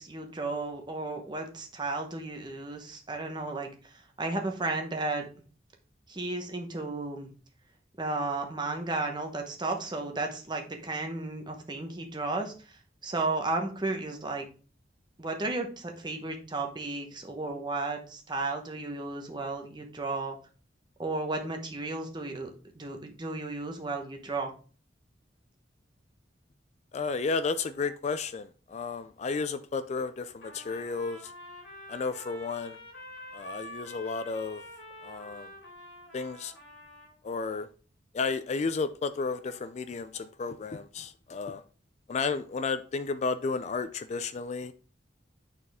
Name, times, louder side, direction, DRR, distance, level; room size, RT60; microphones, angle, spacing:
voice 1, 0.0-5.3 6.1-7.3 8.0-14.5 15.2-20.4 21.0-24.5, right 3 dB, 25° right, 1.0 m, -34 dB
voice 2, 26.9-31.3 31.9-32.8 33.3-34.6 35.0-35.5 36.1-36.5 37.2-37.7 38.1-41.6 42.1-44.7, left 4 dB, 35° left, 0.3 m, -32 dB
Trumpet, 30.4-37.2, left 1 dB, 85° left, 2.5 m, -47 dB
8.7 x 4.2 x 3.5 m
head